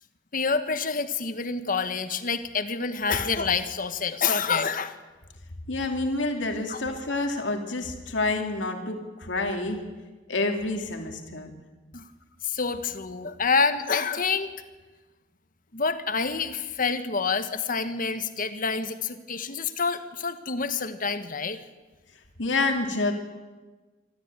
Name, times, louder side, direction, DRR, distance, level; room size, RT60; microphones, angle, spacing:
voice 1, 0.3-4.9 6.7-6.8 11.9-12.0 12.4-14.5 15.7-21.6, left 5 dB, 50° left, 10 dB, 1.4 m, -27 dB
voice 2, 5.7-9.8 10.3-11.5 22.4-23.1, left 2 dB, 85° left, 4 dB, 2.4 m, -28 dB
25.5 x 13.5 x 9.0 m, 1.3 s
head